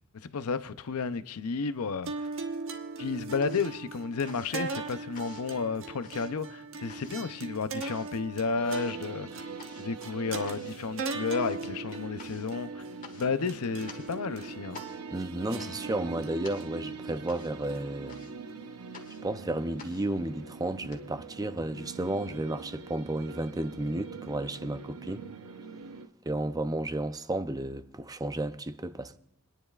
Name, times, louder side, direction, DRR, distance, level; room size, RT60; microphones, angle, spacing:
voice 1, 0.2-2.3 3.0-9.4 9.8-12.8 13.1-14.8, left 4 dB, 75° left, 0.6 m, -32 dB
sound 1, 1.6-2.4 2.7-21.0, left 5 dB, 35° left, 1.5 m, -52 dB
sound 2, 2.1-18.5, right 3 dB, 60° right, 1.3 m, -40 dB
sound 3, 8.6-26.1, right 5 dB, 85° right, 0.9 m, -44 dB
voice 2, 15.1-18.2 19.2-25.3 26.3-29.2, right 1 dB, 15° right, 0.5 m, -32 dB
29.5 x 10.5 x 2.4 m
head